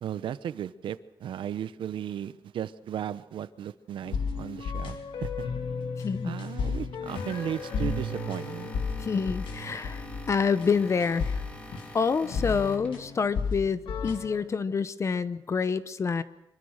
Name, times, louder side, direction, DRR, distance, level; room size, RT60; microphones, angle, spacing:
voice 1, 0.0-5.5 6.2-8.7, right 10 dB, 80° right, 14 dB, 1.0 m, -35 dB
sound 1, 4.0-14.4, left 4 dB, 80° left, 2.6 m, -33 dB
voice 2, 6.0-6.4 9.0-11.4 11.9-16.2, left 5 dB, 35° left, 14 dB, 0.8 m, -27 dB
sound 2, 7.1-13.2, left 1 dB, 15° left, 3.0 m, -47 dB
25.0 x 22.5 x 6.6 m, 0.86 s
wide cardioid pair, 150°, 8 cm